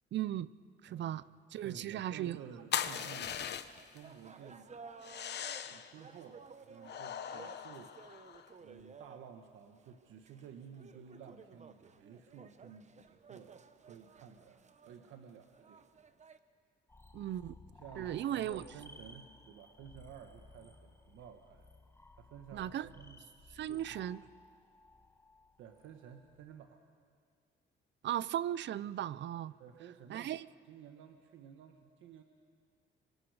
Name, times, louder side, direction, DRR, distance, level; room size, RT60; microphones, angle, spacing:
voice 1, 0.1-0.5 0.8-1.2 1.5-2.4 17.1-17.5 18.0-18.6 22.5-22.9 23.6-24.2 28.0-29.5 30.1-30.4, right 11 dB, 65° right, 18 dB, 0.6 m, -36 dB
voice 2, 1.5-3.4 3.9-5.0 5.6-8.2 8.6-15.9 17.7-21.7 22.1-23.2 23.7-24.1 25.6-26.9 29.6-30.3 30.6-32.2, right 8 dB, 90° right, 5 dB, 1.3 m, -53 dB
sound 1, 2.7-4.0 5.0-5.9 6.8-8.5, left 9 dB, 60° left, 1.0 m, -39 dB
sound 2, 3.2-16.4, right 5 dB, 35° right, 1.0 m, -56 dB
sound 3, 16.9-26.5, left 2 dB, 15° left, 1.6 m, -58 dB
26.5 x 24.5 x 4.9 m, 2.1 s
cardioid pair, 90°, 20 cm